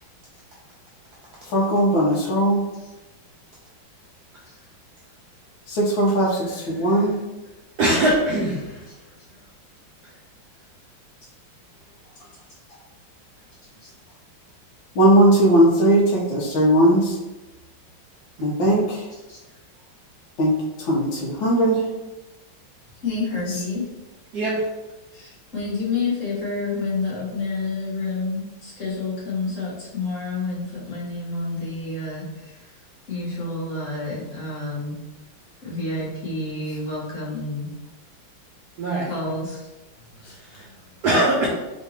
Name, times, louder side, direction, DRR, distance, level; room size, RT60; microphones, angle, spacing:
voice 1, 1.5-2.6 5.7-7.2 15.0-17.2 18.4-19.1 20.4-20.5 20.8-21.8, right 1 dB, 75° left, -3 dB, 1.6 m, -18 dB
voice 2, 7.8-8.8 24.3-24.7 38.8-39.1 40.6-40.7 41.0-41.5, right 1 dB, 70° right, -5 dB, 1.0 m, -21 dB
voice 3, 23.0-23.8 25.1-32.7 33.1-34.9 35.6-37.7 39.1-39.6 40.1-40.2 40.5-40.7, left 3 dB, 45° left, -7 dB, 1.3 m, -29 dB
3.9 x 3.4 x 2.8 m, 1.1 s
omnidirectional pair, 2.2 m